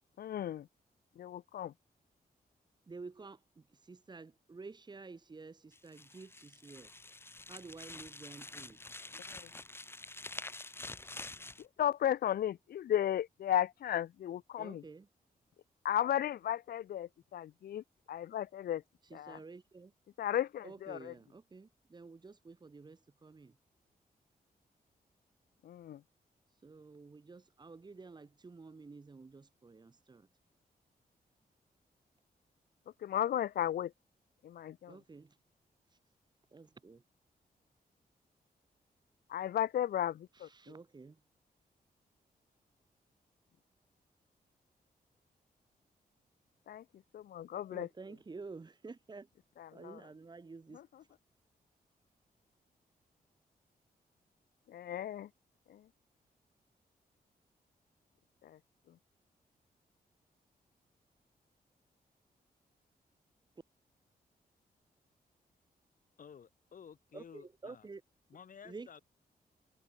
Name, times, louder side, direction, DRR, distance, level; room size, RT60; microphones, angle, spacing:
voice 1, 0.2-0.7 1.2-1.7 9.1-9.5 11.6-14.8 15.8-18.8 19.1-19.4 20.2-21.1 25.6-26.0 33.0-33.9 34.4-34.9 39.3-40.5 46.7-46.8 47.1-47.9 49.8-50.0 54.7-55.3 55.7-55.9 58.4-58.6, left 11 dB, 75° left, 0.5 m, -35 dB
voice 2, 2.9-6.9 7.5-8.8 14.6-15.1 19.0-19.9 20.6-23.6 26.5-30.3 34.9-35.4 35.9-36.0 36.5-37.0 40.3-41.2 47.7-49.3 49.7-51.1 67.1-68.0 68.6-69.0, right 4 dB, 25° right, 3.9 m, -51 dB
sound 1, 5.7-11.6, left 2 dB, 15° left, 1.7 m, -47 dB
voice 3, 66.2-67.8 68.3-69.0, left 7 dB, 60° left, 5.6 m, -53 dB
wide cardioid pair, 165°, 16 cm